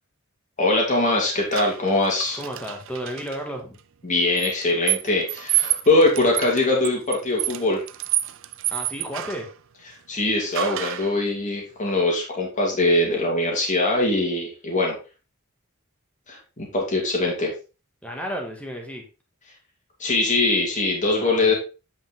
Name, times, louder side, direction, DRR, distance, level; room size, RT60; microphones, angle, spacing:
voice 1, 0.6-2.4 4.0-7.8 9.9-15.0 16.3-17.5 20.0-21.5, left 2 dB, 35° left, -2 dB, 2.7 m, -22 dB
sound 1, 1.5-3.4 4.4-9.5 10.5-11.2, right 15 dB, 65° right, 0.5 m, -28 dB
voice 2, 2.4-3.8 8.7-9.5 18.0-19.1 21.2-21.5, equal, 5° left, 1 dB, 1.9 m, -33 dB
8.7 x 5.3 x 3.8 m, 0.31 s
head